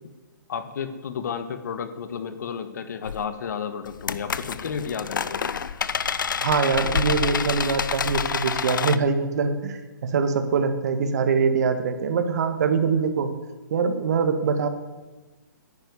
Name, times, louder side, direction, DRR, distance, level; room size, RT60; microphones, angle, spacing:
voice 1, 0.5-5.4, left 7 dB, 60° left, 10 dB, 1.5 m, -32 dB
sound 1, 3.1-3.2 3.9-9.0, left 6 dB, 80° left, 0.8 m, -27 dB
voice 2, 6.4-13.3 13.7-14.7, right 5 dB, 55° right, 9 dB, 1.8 m, -23 dB
10.5 x 10.5 x 9.7 m, 1.2 s
hypercardioid pair, 155°, 11 cm